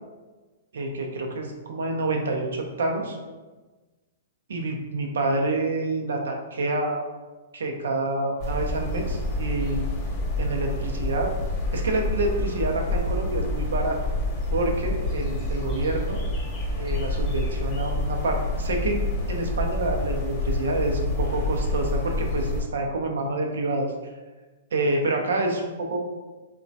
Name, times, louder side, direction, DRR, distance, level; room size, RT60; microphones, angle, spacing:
voice 1, 0.7-3.2 4.5-7.0 7.5-9.8 10.4-11.3 11.7-14.0 14.5-16.2 16.8-23.9 24.7-26.0, right 2 dB, 80° right, 2 dB, 0.5 m, -27 dB
sound 1, 8.4-22.6, left 1 dB, 30° left, 0.8 m, -28 dB
3.1 x 2.2 x 2.6 m, 1.2 s
hypercardioid pair, 135°, 0 cm